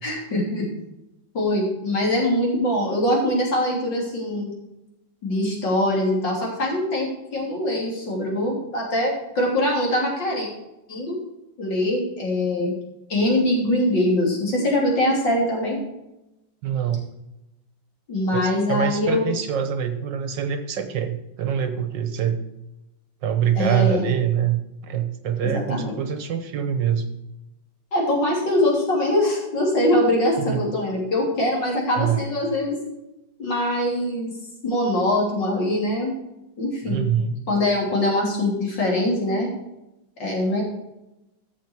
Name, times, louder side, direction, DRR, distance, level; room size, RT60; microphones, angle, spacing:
voice 1, 0.0-0.7 1.3-4.5 5.2-10.5 10.9-11.2 11.6-12.7 13.1-15.8 18.1-19.3 23.6-24.1 25.4-26.0 27.9-32.8 33.4-34.3 34.6-36.1 36.6-37.0 37.5-39.5 40.2-40.6, left 1 dB, 60° left, -2 dB, 3.8 m, -23 dB
voice 2, 16.6-17.1 18.3-22.4 23.2-27.1 30.4-30.7 32.0-32.2 36.8-37.4, right 8 dB, 65° right, 8 dB, 1.6 m, -24 dB
13.0 x 7.1 x 4.6 m, 0.91 s
omnidirectional pair, 2.2 m